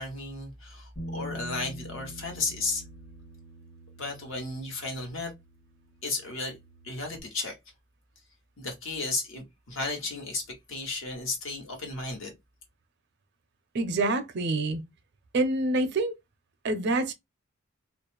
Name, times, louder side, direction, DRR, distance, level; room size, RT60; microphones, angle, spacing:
voice 1, 0.0-2.8 4.0-5.3 6.0-6.6 6.8-7.6 8.6-12.4, left 3 dB, 70° left, 1.0 m, -34 dB
Bass guitar, 1.0-7.2, right 1 dB, 45° left, 1.4 m, -45 dB
voice 2, 13.7-14.8 15.3-16.1 16.6-17.1, right 2 dB, 55° right, 0.4 m, -26 dB
2.4 x 2.0 x 2.9 m
head